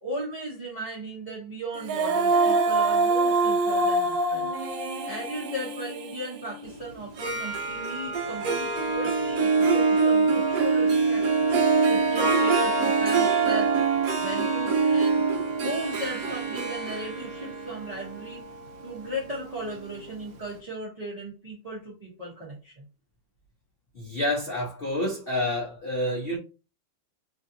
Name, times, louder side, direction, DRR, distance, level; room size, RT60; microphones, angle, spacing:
voice 1, 0.0-4.5 5.1-11.3 11.9-13.8 14.2-15.2 15.6-18.4 18.8-22.9, right 1 dB, 35° right, 0.6 m, -36 dB
Female singing, 1.7-6.9, right 2 dB, 85° right, 1.3 m, -25 dB
Harp, 7.0-19.9, right 4 dB, 65° right, 0.9 m, -24 dB
voice 2, 23.9-26.4, left 1 dB, 70° left, 0.5 m, -28 dB
3.2 x 2.6 x 2.6 m
omnidirectional pair, 2.0 m